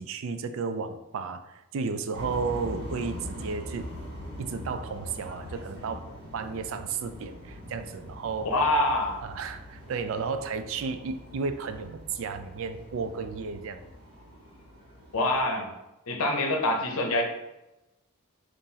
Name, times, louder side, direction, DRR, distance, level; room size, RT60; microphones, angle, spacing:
voice 1, 0.0-3.9 4.4-8.5 9.2-13.8, right 5 dB, 65° right, 10 dB, 0.3 m, -33 dB
sound 1, 2.1-15.4, equal, 45° right, 1.5 m, -42 dB
voice 2, 8.4-9.2 15.1-15.7 16.1-17.2, left 1 dB, 75° left, 3 dB, 0.7 m, -25 dB
5.5 x 2.5 x 2.7 m, 0.99 s
head